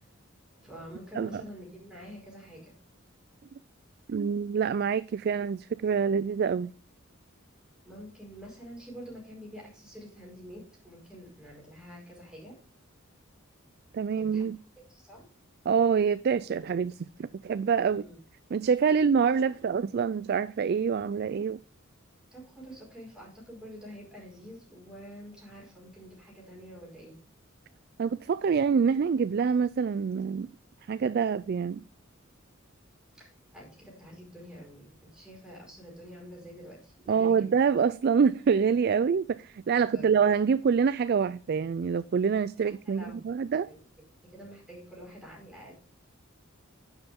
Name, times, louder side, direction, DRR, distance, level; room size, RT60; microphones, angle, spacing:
voice 1, 0.6-2.7 7.8-12.5 14.1-14.5 14.9-15.2 17.8-18.2 22.3-27.2 33.1-37.5 39.9-40.2 42.8-43.8 44.2-45.7, equal, 5° right, 4.9 m, -47 dB
voice 2, 4.1-6.7 13.9-14.6 15.7-18.0 18.5-21.6 28.0-30.5 30.9-31.8 37.1-43.7, right 6 dB, 50° right, 0.3 m, -26 dB
10.5 x 7.2 x 3.6 m
head